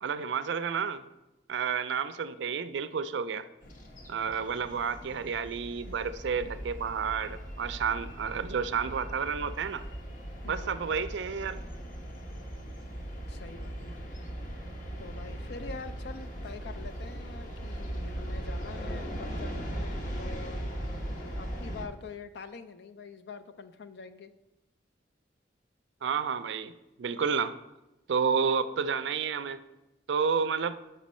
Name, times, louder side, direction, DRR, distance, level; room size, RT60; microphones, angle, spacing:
voice 1, 0.0-1.0 1.5-3.5 4.1-9.8 10.5-11.6 26.0-26.7 27.0-27.5 28.1-29.6 30.1-30.8, right 6 dB, 80° right, 12 dB, 0.4 m, -30 dB
sound 1, 3.6-21.9, equal, 50° left, 0.9 m, -39 dB
voice 2, 10.4-10.8 13.3-14.1 15.0-20.7 21.4-24.3, left 4 dB, 65° left, 10 dB, 0.4 m, -45 dB
6.1 x 5.5 x 4.2 m, 0.98 s
head